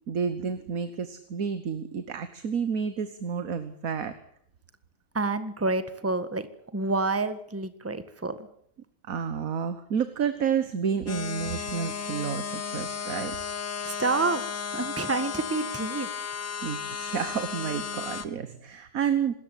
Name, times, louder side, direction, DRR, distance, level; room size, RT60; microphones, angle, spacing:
voice 1, 0.1-4.1 9.1-13.4 16.6-19.3, right 7 dB, 50° right, 11 dB, 1.6 m, -30 dB
voice 2, 5.1-6.5 6.7-8.4 13.8-14.4 14.7-16.1, right 3 dB, 10° right, 12 dB, 1.5 m, -28 dB
sound 1, 11.1-18.3, left 6 dB, 90° left, 2.2 m, -34 dB
25.0 x 14.0 x 9.3 m, 0.67 s
omnidirectional pair, 1.9 m